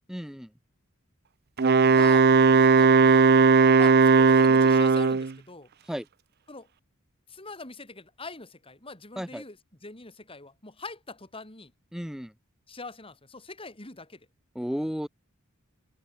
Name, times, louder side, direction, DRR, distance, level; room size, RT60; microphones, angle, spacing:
voice 1, 0.1-0.5 5.8-6.1 9.2-9.4 11.9-12.3 14.5-15.1, equal, ahead, 1.0 m, -33 dB
voice 2, 1.6-5.7 6.5-6.7 7.3-11.7 12.7-14.3, left 3 dB, 25° left, 4.6 m, -43 dB
Wind instrument woodwind instrument, 1.6-5.3, right 4 dB, 50° right, 0.6 m, -18 dB
head